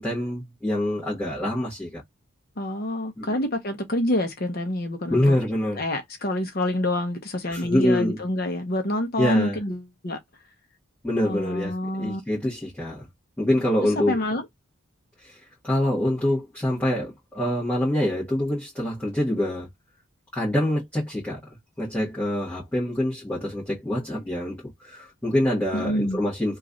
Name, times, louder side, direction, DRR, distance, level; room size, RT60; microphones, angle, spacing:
voice 1, 0.0-2.0 3.2-3.4 5.1-5.8 7.5-8.2 9.2-9.6 11.0-13.1 13.4-14.2 15.2-19.7 20.3-21.4 21.8-26.6, left 1 dB, 10° left, 1.2 m, -25 dB
voice 2, 2.6-5.4 5.8-10.2 11.2-12.2 14.0-14.4 25.7-26.2, left 1 dB, 45° left, 0.7 m, -27 dB
3.0 x 2.4 x 3.8 m
head